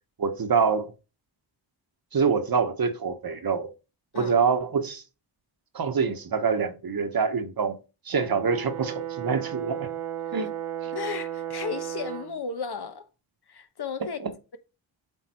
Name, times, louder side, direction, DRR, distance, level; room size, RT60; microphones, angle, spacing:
voice 1, 0.2-0.9 2.1-3.7 4.1-5.0 5.7-7.8 8.0-9.9 10.3-10.5 14.2-14.3, right 5 dB, 45° right, 1.2 m, -25 dB
Brass instrument, 8.1-12.4, right 11 dB, 85° right, 1.1 m, -34 dB
voice 2, 10.9-13.1 13.5-14.2, left 6 dB, 50° left, 1.1 m, -34 dB
8.3 x 3.7 x 4.4 m
cardioid pair, 55°, 49 cm